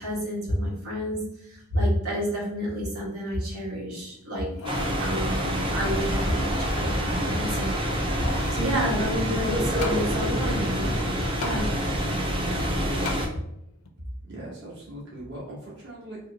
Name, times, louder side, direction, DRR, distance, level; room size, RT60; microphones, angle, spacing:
voice 1, 0.0-4.5 5.0-8.2 8.5-10.9 11.4-11.7, equal, 85° right, -5 dB, 1.4 m, -29 dB
sound 1, 4.3-5.0 5.4-5.5 6.3-6.8 7.8-8.6 9.8-10.0 11.4-11.6 13.0-13.2 13.8-13.9, left 3 dB, 65° left, 0.4 m, -36 dB
sound 2, 4.6-13.3, equal, 25° right, 0.5 m, -27 dB
voice 2, 14.3-16.3, right 1 dB, 50° right, -6 dB, 1.1 m, -40 dB
2.9 x 2.8 x 3.9 m, 0.79 s
head